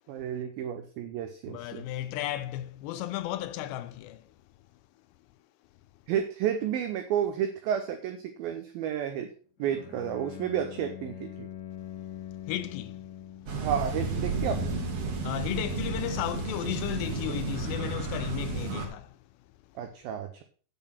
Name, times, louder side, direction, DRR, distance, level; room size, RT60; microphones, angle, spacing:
voice 1, 0.1-1.8 6.1-9.3 9.6-11.5 13.6-14.8 19.8-20.4, right 9 dB, 90° right, 2.0 m, -31 dB
voice 2, 1.5-4.3 12.5-13.0 15.2-19.2, left 13 dB, 85° left, 2.7 m, -34 dB
Bowed string instrument, 9.6-13.7, left 10 dB, 65° left, 3.0 m, -43 dB
sound 1, 13.5-18.9, right 3 dB, 50° right, 2.1 m, -32 dB
8.5 x 7.2 x 5.8 m
omnidirectional pair, 5.2 m